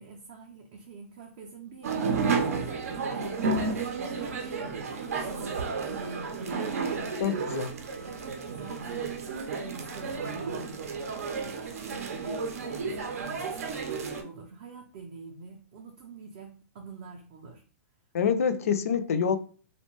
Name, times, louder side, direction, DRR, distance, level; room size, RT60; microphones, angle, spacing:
voice 1, 0.0-6.9 8.1-17.6, right 4 dB, 35° right, 0.4 m, -46 dB
sound 1, 1.8-14.2, right 4 dB, 80° right, 0.6 m, -32 dB
voice 2, 7.2-7.7 18.1-19.4, left 7 dB, 75° left, 0.4 m, -26 dB
2.6 x 2.1 x 3.0 m
hypercardioid pair, 170°, 8 cm